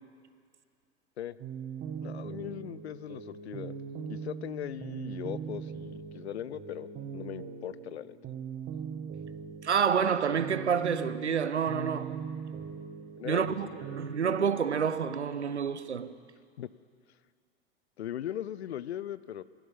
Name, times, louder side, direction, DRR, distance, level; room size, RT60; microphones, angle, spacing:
sound 1, 1.4-14.7, right 6 dB, 30° right, 1.8 m, -41 dB
voice 1, 2.0-3.7 4.1-8.2 13.2-13.5 16.6-16.7 18.0-19.4, left 11 dB, 70° left, 0.5 m, -39 dB
voice 2, 9.6-12.2 13.2-16.2, right 7 dB, 85° right, 0.6 m, -28 dB
14.0 x 11.5 x 8.7 m
figure-of-eight pair, 90°, 33 cm